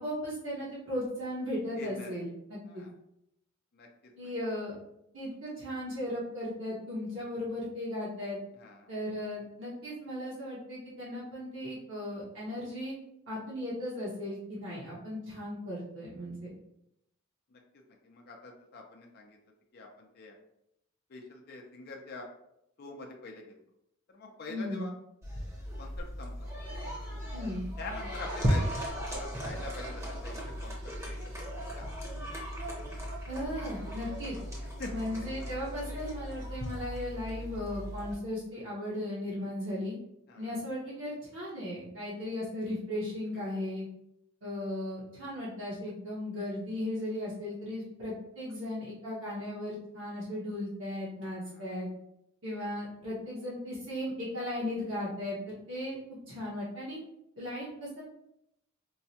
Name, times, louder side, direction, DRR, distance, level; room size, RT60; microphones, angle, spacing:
voice 1, 0.0-2.8 4.2-4.8 5.1-8.4 8.9-13.0 13.3-16.5 24.5-24.9 27.3-27.6 33.3-34.4 34.9-40.0 40.4-43.9 44.4-51.9 52.4-56.0 56.3-57.0 57.4-58.0, left 1 dB, 65° right, -8 dB, 1.0 m, -36 dB
voice 2, 1.8-2.2 2.6-2.9 3.7-3.9 4.2-4.3 8.5-8.9 14.7-14.8 17.5-17.6 18.0-19.4 19.7-20.3 21.1-22.3 22.8-23.6 24.1-24.9 25.8-26.5 27.8-31.4 31.8-31.9 34.8-35.1 40.3-40.5 43.5-43.6 51.5-51.7, left 3 dB, 50° left, 1 dB, 0.5 m, -45 dB
sound 1, 25.2-38.1, equal, 15° right, 0.8 m, -36 dB
4.5 x 2.1 x 2.8 m, 0.79 s
head